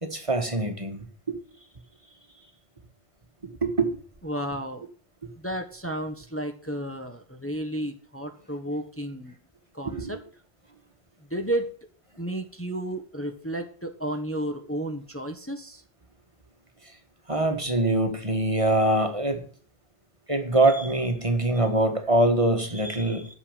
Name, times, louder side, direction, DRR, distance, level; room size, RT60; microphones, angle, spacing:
voice 1, 0.0-1.4 3.6-4.0 9.8-10.2 17.3-19.4 20.3-23.4, right 2 dB, 30° right, 6 dB, 1.7 m, -24 dB
voice 2, 4.2-4.9 5.4-9.3 9.7-10.2 11.3-11.7 12.2-15.8, right 1 dB, 15° left, 4 dB, 1.4 m, -32 dB
10.0 x 6.5 x 8.9 m, 0.43 s
omnidirectional pair, 1.0 m